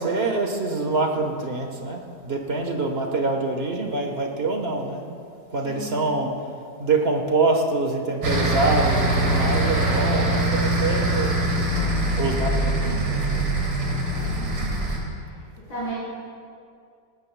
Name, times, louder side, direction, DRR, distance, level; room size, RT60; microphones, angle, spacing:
voice 1, 0.0-5.0 5.5-6.3 6.8-13.4, right 3 dB, 40° right, 2 dB, 1.4 m, -25 dB
voice 2, 5.6-6.0 14.2-14.8 15.7-15.9, right 1 dB, 90° left, -11 dB, 4.6 m, -34 dB
sound 1, 8.2-15.0, right 1 dB, 85° right, 2.9 m, -23 dB
19.0 x 19.0 x 2.3 m, 2.4 s
omnidirectional pair, 1.9 m